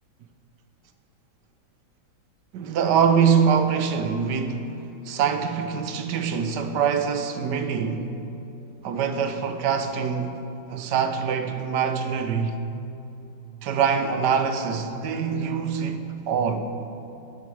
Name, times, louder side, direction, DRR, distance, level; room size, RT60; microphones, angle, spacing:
voice 1, 2.5-4.7 5.1-8.1 8.8-10.4 10.7-12.6 13.6-16.7, right 6 dB, 65° right, 1.2 m, -24 dB
12.5 x 11.0 x 4.6 m
omnidirectional pair, 2.1 m